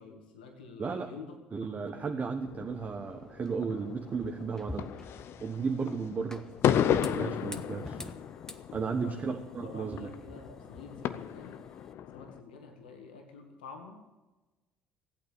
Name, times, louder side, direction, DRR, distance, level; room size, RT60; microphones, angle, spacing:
voice 1, 0.0-1.4 1.7-2.1 9.0-11.6 12.1-14.0, left 4 dB, 90° left, 3 dB, 2.0 m, -48 dB
voice 2, 0.8-1.1 1.5-4.9 5.4-6.4 6.8-8.0 8.7-10.1, right 5 dB, 35° right, 4 dB, 1.3 m, -34 dB
sound 1, 2.5-12.4, left 10 dB, 60° left, 0.8 m, -34 dB
sound 2, 2.7-11.9, left 1 dB, 10° left, 1.3 m, -49 dB
15.5 x 8.7 x 8.4 m, 1.2 s
hypercardioid pair, 65°, 5 cm